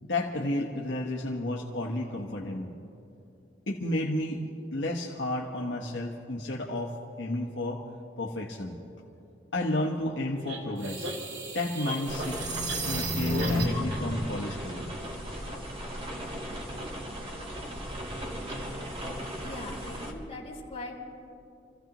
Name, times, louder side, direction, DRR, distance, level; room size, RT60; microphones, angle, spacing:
voice 1, 0.0-2.7 3.7-4.4 4.7-7.8 8.2-8.8 9.5-11.1 11.5-12.4 12.8-14.9, left 1 dB, 75° left, -1 dB, 1.1 m, -32 dB
sound 1, 10.5-14.0, equal, 85° right, 1.9 m, -31 dB
sound 2, 12.1-20.1, equal, 30° right, 1.7 m, -37 dB
voice 2, 19.4-21.0, left 2 dB, 35° left, -4 dB, 3.2 m, -41 dB
29.0 x 15.0 x 3.0 m, 2.7 s
head